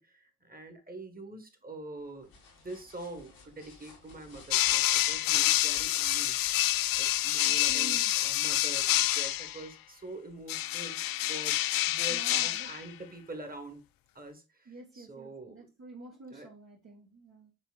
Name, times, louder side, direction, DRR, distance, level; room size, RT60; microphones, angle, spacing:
voice 1, 0.0-11.0 11.3-11.6 11.9-13.8 14.1-15.7 16.3-16.5, right 2 dB, 20° right, 6 dB, 1.6 m, -45 dB
sound 1, 2.0-9.7, left 3 dB, 85° left, 1.6 m, -56 dB
sound 2, 4.5-9.6 10.5-12.8, left 14 dB, 55° left, 0.5 m, -27 dB
voice 2, 7.4-8.2 12.1-12.7 14.6-17.5, right 2 dB, 40° right, -1 dB, 1.3 m, -48 dB
5.5 x 3.7 x 2.5 m, 0.29 s
hypercardioid pair, 45°, 41 cm